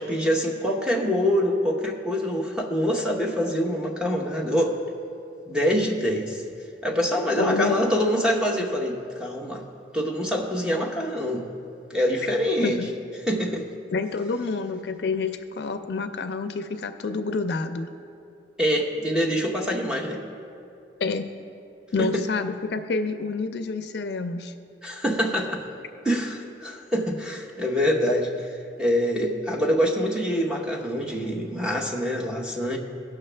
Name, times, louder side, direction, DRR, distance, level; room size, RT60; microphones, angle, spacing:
voice 1, 0.0-4.8 5.5-6.4 6.8-9.6 9.9-11.4 11.9-12.8 13.3-13.7 18.6-20.2 22.0-22.2 24.8-25.6 26.0-28.5 28.8-32.8, equal, 5° right, -1 dB, 0.8 m, -25 dB
voice 2, 7.4-7.8 12.6-12.9 13.9-17.9 21.0-21.3 21.9-24.5, left 4 dB, 70° left, 9 dB, 0.4 m, -28 dB
17.0 x 6.0 x 3.3 m, 2.6 s
head